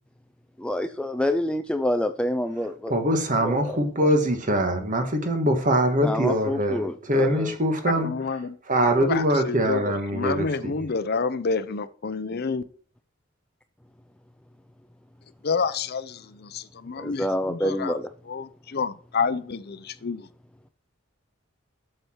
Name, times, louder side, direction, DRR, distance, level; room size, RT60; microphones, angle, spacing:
voice 1, 0.6-3.0 3.4-3.5 6.0-7.5 17.0-18.1, left 1 dB, 5° left, 0.4 m, -27 dB
voice 2, 2.9-8.1 8.7-10.8, right 1 dB, 40° right, 1.6 m, -23 dB
voice 3, 7.9-8.6 9.0-12.6 15.4-18.0 18.3-20.3, left 5 dB, 55° left, 0.6 m, -29 dB
7.9 x 6.9 x 4.5 m
head